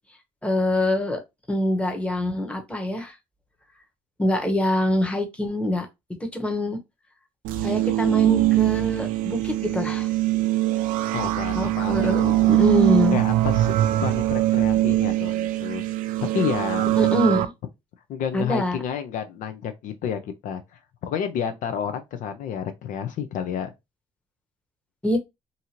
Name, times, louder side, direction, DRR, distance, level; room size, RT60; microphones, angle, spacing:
voice 1, 0.4-1.2 1.5-3.1 4.2-5.9 6.2-6.8 7.6-10.1 11.5-13.2 17.0-17.5 18.3-18.8 25.0-25.2, left 1 dB, 10° left, 1.0 m, -24 dB
sound 1, 7.4-17.5, right 16 dB, 70° right, 0.4 m, -22 dB
voice 2, 11.1-12.5 13.1-15.8 16.3-16.9 18.1-20.6 21.0-23.7, left 8 dB, 65° left, 0.5 m, -30 dB
2.7 x 2.5 x 2.9 m
supercardioid pair, 80°, 15 cm